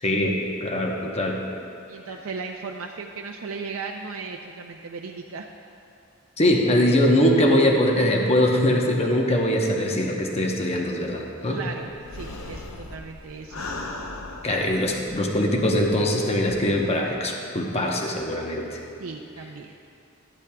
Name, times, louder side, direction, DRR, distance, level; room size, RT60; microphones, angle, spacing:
voice 1, 0.0-1.4 6.4-11.6 14.4-18.8, left 1 dB, 30° left, 0 dB, 0.9 m, -22 dB
voice 2, 1.9-5.5 11.5-11.8 12.1-13.9 19.0-19.7, right 4 dB, 70° right, 2 dB, 0.5 m, -36 dB
sound 1, 11.9-15.5 15.8-15.9 16.4-16.8, left 2 dB, 70° left, 0.8 m, -38 dB
12.0 x 11.5 x 2.3 m, 2.7 s
head